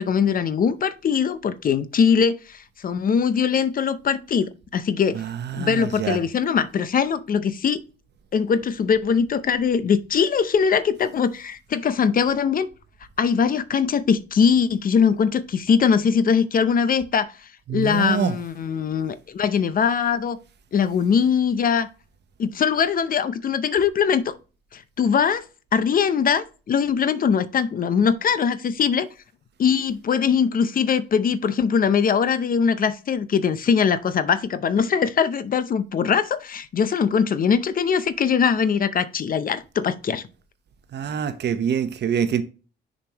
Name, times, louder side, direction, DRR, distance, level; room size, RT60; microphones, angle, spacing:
voice 1, 0.0-5.2 5.5-7.8 8.3-12.7 13.2-17.3 17.7-20.4 20.7-21.9 22.4-24.3 24.7-25.4 25.7-29.1 29.6-40.2, left 6 dB, 45° left, 0.6 m, -21 dB
voice 2, 5.1-6.2 17.7-18.4 40.9-42.4, right 8 dB, 60° right, 0.9 m, -25 dB
6.8 x 5.2 x 2.9 m
cardioid pair, 90°, 20 cm